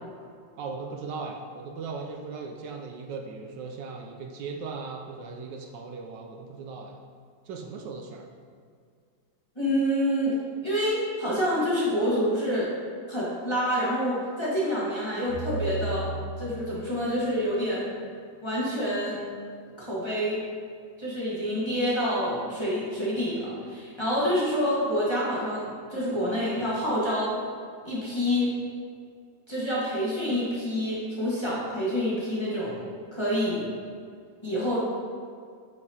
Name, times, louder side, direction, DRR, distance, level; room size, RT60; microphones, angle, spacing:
voice 1, 0.6-7.0 7.5-8.3, right 4 dB, 75° right, 2 dB, 1.2 m, -38 dB
voice 2, 9.5-10.4 10.6-12.7 13.1-16.1 16.4-17.8 18.4-19.2 19.8-20.4 21.0-27.3 27.8-28.5 29.5-32.8 33.1-33.7 34.4-34.8, equal, 15° left, -9 dB, 1.3 m, -27 dB
sound 1, 15.3-17.7, right 2 dB, 35° right, 1.5 m, -35 dB
8.7 x 5.0 x 2.8 m, 2.2 s
omnidirectional pair, 2.0 m